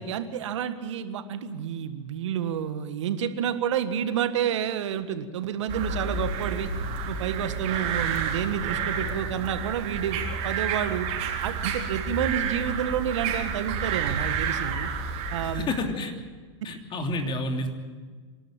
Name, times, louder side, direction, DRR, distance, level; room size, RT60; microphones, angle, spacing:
voice 1, 0.0-6.7 7.1-11.1 11.4-14.9 15.3-15.7, right 9 dB, 75° right, 10 dB, 1.6 m, -29 dB
sound 1, 5.7-15.6, right 5 dB, 45° right, 3.8 m, -30 dB
voice 2, 15.4-16.1 16.6-17.7, left 2 dB, 30° left, 4 dB, 3.1 m, -29 dB
25.5 x 12.0 x 8.9 m, 1.4 s
hypercardioid pair, 105°, 16 cm